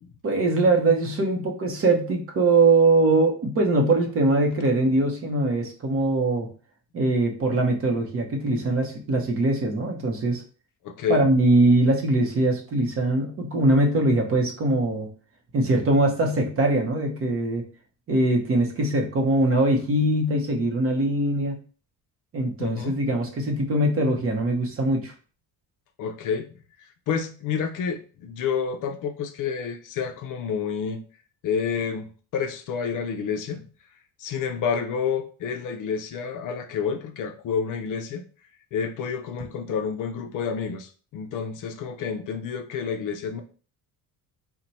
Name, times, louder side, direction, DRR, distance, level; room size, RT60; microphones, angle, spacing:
voice 1, 0.2-6.5 6.9-10.4 11.1-15.1 15.5-17.6 18.1-21.6 22.3-25.1, right 2 dB, 35° right, 2 dB, 0.7 m, -22 dB
voice 2, 10.8-11.2 22.6-23.0 26.0-26.5 26.8-31.0 31.4-33.6 34.2-38.2 38.7-43.4, left 6 dB, 50° left, 5 dB, 0.5 m, -29 dB
4.3 x 2.2 x 4.0 m, 0.39 s
cardioid pair, 175°, 40 cm